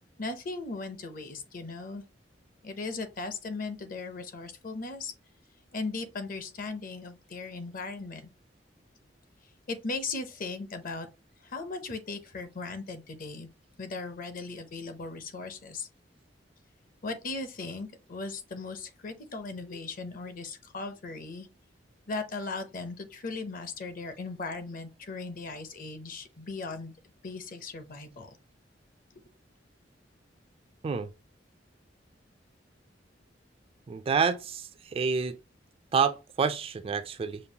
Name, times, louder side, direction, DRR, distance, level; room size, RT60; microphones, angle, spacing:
voice 1, 0.2-2.0 2.6-5.1 5.7-8.3 9.7-11.1 11.4-13.5 13.8-15.9 17.0-21.5 22.1-26.9 27.2-28.4, left 3 dB, 50° left, 0.6 m, -37 dB
voice 2, 33.9-35.4 35.9-37.4, right 5 dB, 30° right, 0.3 m, -28 dB
5.2 x 2.3 x 2.7 m
head